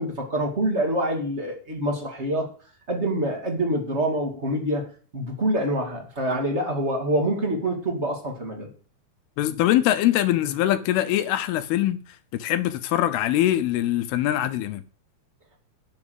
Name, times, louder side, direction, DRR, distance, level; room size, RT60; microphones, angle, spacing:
voice 1, 0.0-2.5 2.9-8.7, right 1 dB, 20° right, 2.0 m, -26 dB
voice 2, 9.4-12.0 12.3-14.8, left 13 dB, 85° left, 2.7 m, -23 dB
11.0 x 6.1 x 7.9 m
omnidirectional pair, 4.5 m